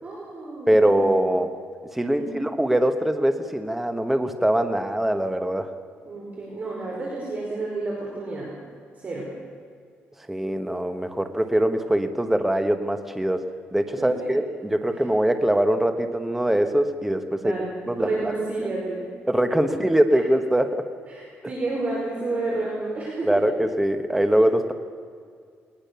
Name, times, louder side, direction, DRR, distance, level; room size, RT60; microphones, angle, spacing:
voice 1, 0.0-1.3 6.1-8.5 9.0-9.3 14.0-14.3 17.4-19.0 21.1-23.5, right 2 dB, 35° right, -3 dB, 5.3 m, -30 dB
voice 2, 0.7-1.5 1.9-5.7 10.3-13.4 13.7-17.5 17.9-18.1 19.3-20.8 23.2-24.7, right 1 dB, 5° right, 7 dB, 1.3 m, -22 dB
21.0 x 20.0 x 7.0 m, 2.1 s
cardioid pair, 125°, 4 cm